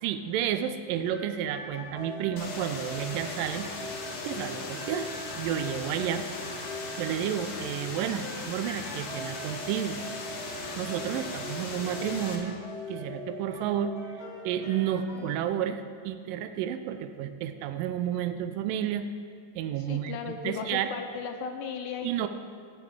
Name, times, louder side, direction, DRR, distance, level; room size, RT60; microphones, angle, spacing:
voice 1, 0.0-3.7 4.2-6.3 6.5-6.7 7.0-10.0 10.8-12.6 12.9-13.9 14.4-19.0 19.6-20.9 22.0-22.3, right 10 dB, 85° right, 10 dB, 2.2 m, -31 dB
sound 1, 1.0-15.3, left 1 dB, 40° left, 1.7 m, -41 dB
sound 2, 2.4-12.4, left 3 dB, 60° left, 1.6 m, -39 dB
Wind instrument woodwind instrument, 4.3-10.1, left 1 dB, 60° right, 1.8 m, -52 dB
voice 2, 19.8-22.3, left 6 dB, 80° left, 6 dB, 2.2 m, -36 dB
10.5 x 6.0 x 8.4 m, 2.1 s
omnidirectional pair, 4.0 m